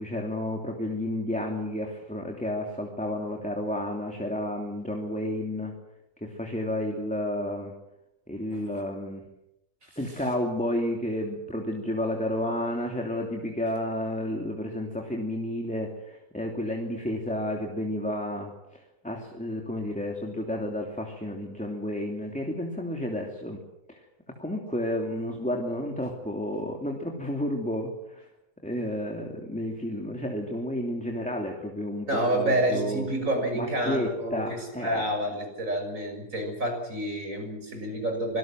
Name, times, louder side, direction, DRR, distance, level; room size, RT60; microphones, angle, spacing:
voice 1, 0.0-5.7 6.2-7.7 8.3-9.2 10.0-23.6 23.9-24.0 24.4-28.2 28.6-32.1 32.3-33.1 33.5-35.0, left 1 dB, 5° left, 1 dB, 2.8 m, -31 dB
voice 2, 32.1-38.4, right 1 dB, 50° right, 4 dB, 6.8 m, -29 dB
25.5 x 19.0 x 7.7 m, 0.86 s
omnidirectional pair, 1.7 m